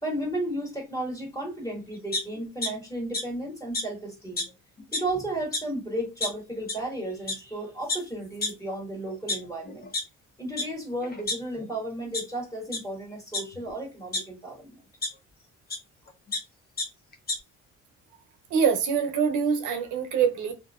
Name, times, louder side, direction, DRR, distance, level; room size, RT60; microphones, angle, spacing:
voice 1, 0.0-4.4 4.9-9.9 10.4-14.8, right 1 dB, 10° left, 1.6 m, -34 dB
sound 1, 2.1-2.7 3.1-3.2 3.7-3.8 4.4-4.5 4.8-5.1 5.5-5.6 6.2-6.3 6.7-6.8 7.3-7.4 7.9-8.0 8.4-8.5 9.1-10.0 10.6-10.7 11.0-11.7 12.1-12.2 12.7-12.8 13.3-14.2 15.0-15.1 15.7-15.8 16.1-16.4 16.8-16.9 17.1-17.4, left 2 dB, 30° left, 0.8 m, -29 dB
voice 2, 18.5-20.5, right 6 dB, 80° right, 0.7 m, -24 dB
2.7 x 2.6 x 2.3 m
cardioid pair, 90°, 30 cm